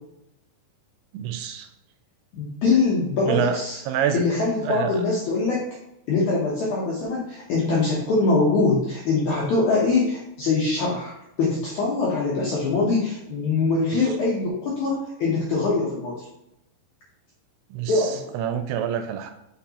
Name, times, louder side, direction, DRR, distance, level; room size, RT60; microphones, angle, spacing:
voice 1, 1.1-1.7 3.3-3.6 3.9-4.2 4.6-4.9 17.7-19.3, right 9 dB, 85° right, 7 dB, 2.5 m, -27 dB
voice 2, 2.3-3.8 4.1-5.6 6.1-11.1 11.4-16.3 17.9-18.2, left 3 dB, 75° left, -5 dB, 1.7 m, -23 dB
6.5 x 5.6 x 2.9 m, 0.84 s
omnidirectional pair, 4.8 m